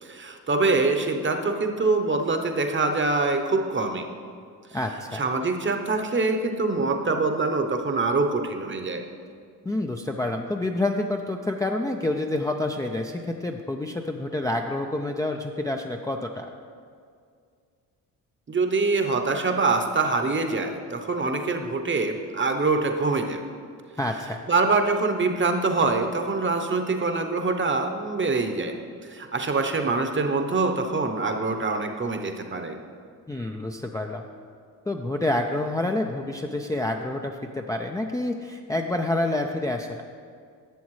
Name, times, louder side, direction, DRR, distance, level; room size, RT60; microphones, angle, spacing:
voice 1, 0.0-4.1 5.1-9.0 18.5-23.4 24.5-28.7 29.0-32.8, right 3 dB, 30° right, 5 dB, 0.9 m, -24 dB
voice 2, 4.7-5.2 9.6-16.5 24.0-24.4 33.3-34.2 34.8-40.0, left 2 dB, 10° left, 2 dB, 0.4 m, -28 dB
11.5 x 7.0 x 3.2 m, 2.2 s
supercardioid pair, 60°, 38 cm